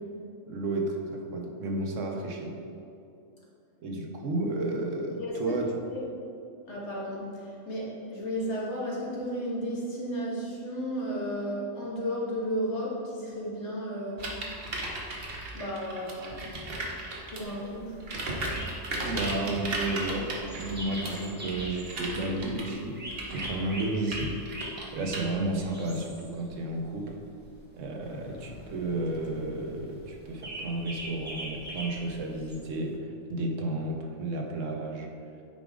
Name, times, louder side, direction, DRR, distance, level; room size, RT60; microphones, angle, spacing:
voice 1, 0.5-2.6 3.8-5.8 18.9-23.0 23.3-24.3 24.9-27.2 27.7-35.1, right 2 dB, 85° right, 2 dB, 1.2 m, -32 dB
voice 2, 5.2-5.6 5.9-6.0 6.7-14.3 15.5-16.5 17.3-18.0, equal, 65° left, -5 dB, 1.8 m, -33 dB
sound 1, 14.2-17.6 18.0-25.2, right 2 dB, 50° right, 1.2 m, -36 dB
sound 2, 17.4-32.6, right 1 dB, 10° right, 1.2 m, -42 dB
sound 3, 28.0-33.0, left 2 dB, 40° left, 0.5 m, -50 dB
8.9 x 5.0 x 3.6 m, 2.6 s
omnidirectional pair, 1.3 m